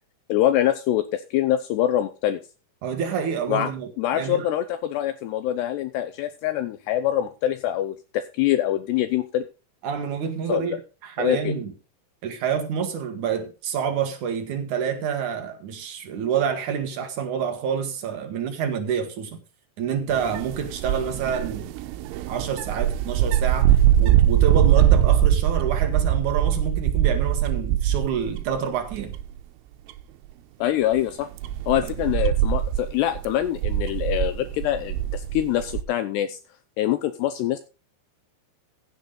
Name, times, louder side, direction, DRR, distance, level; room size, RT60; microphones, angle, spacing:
voice 1, 0.3-2.4 3.5-3.7 4.0-9.5 10.5-10.8 11.2-11.5 30.6-31.3 31.7-36.4 36.8-37.6, left 12 dB, 80° left, 2.6 m, -24 dB
voice 2, 2.8-4.5 9.8-10.8 11.0-11.7 12.2-19.4 19.8-21.7 22.3-29.1 31.8-31.9, right 7 dB, 60° right, 2.2 m, -28 dB
sound 1, 20.1-28.6 28.9-29.4 29.9-30.0 30.9-35.8, right 11 dB, 85° right, 3.3 m, -22 dB
15.5 x 8.0 x 3.9 m
omnidirectional pair, 5.5 m